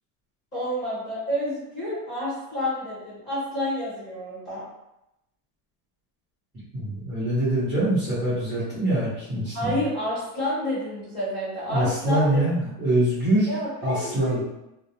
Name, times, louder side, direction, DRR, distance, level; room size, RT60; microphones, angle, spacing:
voice 1, 0.5-4.6 9.5-12.4 13.5-14.4, equal, 25° left, -12 dB, 1.1 m, -29 dB
voice 2, 6.7-9.8 11.7-13.5 13.8-14.4, right 1 dB, 15° right, -15 dB, 0.9 m, -24 dB
2.5 x 2.0 x 2.9 m, 0.88 s
cardioid pair, 180°, 45 cm